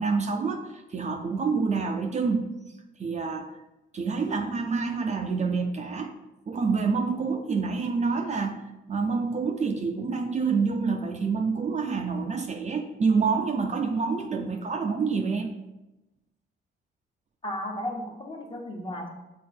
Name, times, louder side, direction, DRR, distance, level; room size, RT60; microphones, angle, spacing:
voice 1, 0.0-2.5 3.0-3.5 3.9-6.1 6.5-8.6 8.9-15.5, right 4 dB, 35° right, 4 dB, 0.6 m, -27 dB
voice 2, 17.4-19.1, left 1 dB, 25° left, 1 dB, 1.3 m, -34 dB
6.4 x 3.8 x 4.3 m, 1.0 s
cardioid pair, 90°, 20 cm